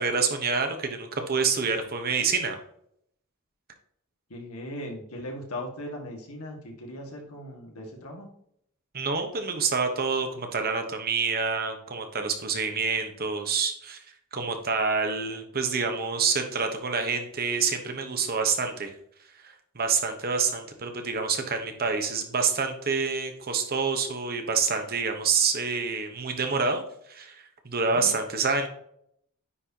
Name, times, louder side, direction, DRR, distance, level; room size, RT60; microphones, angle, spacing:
voice 1, 0.0-2.6 8.9-14.0 14.3-18.9 19.4-28.7, right 5 dB, 45° right, 5 dB, 1.2 m, -27 dB
voice 2, 4.3-8.3 27.8-28.1, left 1 dB, 75° left, 1 dB, 2.0 m, -38 dB
9.7 x 4.4 x 2.9 m, 0.69 s
head